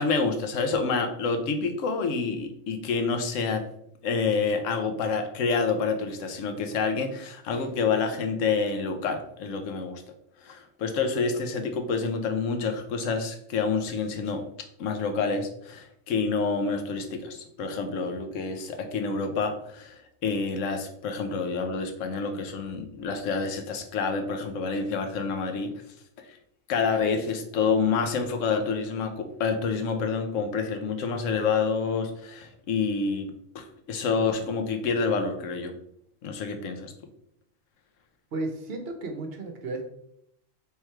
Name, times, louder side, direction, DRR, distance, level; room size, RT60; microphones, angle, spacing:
voice 1, 0.0-3.6 4.0-10.0 10.4-14.4 14.8-25.7 26.2-26.4 26.7-35.7 36.2-36.9, left 4 dB, 75° left, 6 dB, 1.0 m, -28 dB
voice 2, 38.3-39.8, right 2 dB, 55° right, 4 dB, 0.9 m, -33 dB
3.5 x 3.0 x 4.4 m, 0.73 s
omnidirectional pair, 1.4 m